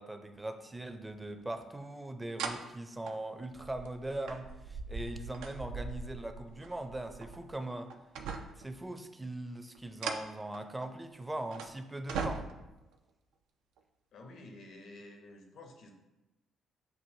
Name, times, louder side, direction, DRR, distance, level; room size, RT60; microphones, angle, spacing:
voice 1, 0.0-7.9 8.6-12.5, right 1 dB, 15° right, 7 dB, 0.5 m, -40 dB
sound 1, 1.4-1.5 2.4-2.6 3.1-7.6 7.9-8.7 9.7-11.0 11.5-11.7 12.1-12.8 13.8-13.9, right 5 dB, 70° right, 0.3 m, -40 dB
voice 2, 14.1-15.9, left 2 dB, 60° left, 4 dB, 0.7 m, -51 dB
6.7 x 2.6 x 2.7 m, 1.0 s
hypercardioid pair, 45°, 0 cm